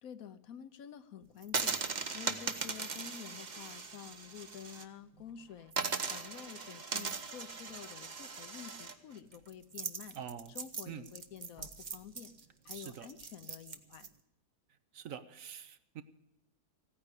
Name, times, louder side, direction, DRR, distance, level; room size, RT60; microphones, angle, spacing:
voice 1, 0.0-1.7 2.1-5.7 6.1-10.2 10.5-12.3 12.6-14.1, left 8 dB, 65° left, 13 dB, 1.1 m, -49 dB
sound 1, 1.4-4.8 5.2-5.3 5.7-14.1, right 5 dB, 35° right, 0.9 m, -39 dB
voice 2, 10.1-10.5 10.8-11.1 12.7-13.1 14.9-16.0, right 8 dB, 65° right, 12 dB, 1.1 m, -45 dB
15.5 x 9.7 x 8.2 m, 0.91 s
omnidirectional pair, 1.6 m